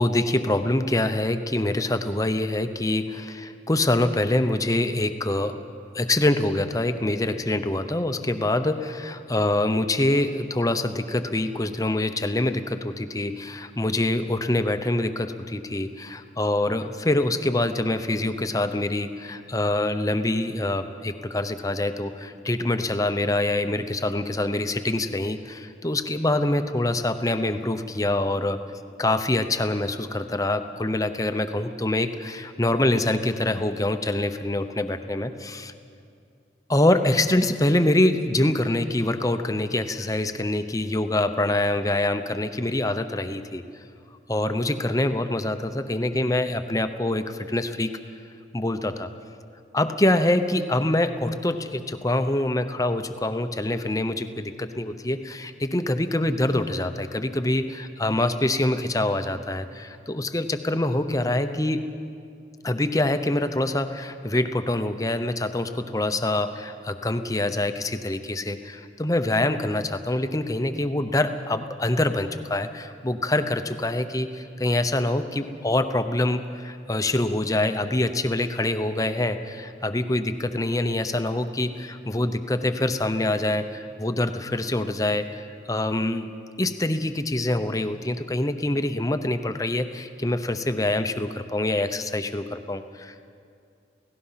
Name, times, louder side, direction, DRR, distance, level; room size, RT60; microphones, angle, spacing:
voice 1, 0.0-5.6 5.9-28.6 29.0-35.7 36.7-43.6 44.3-47.9 48.5-49.1 49.7-61.9 62.6-86.3 86.6-93.3, left 1 dB, 20° left, 8 dB, 0.8 m, -25 dB
29.5 x 17.0 x 5.8 m, 2.4 s
head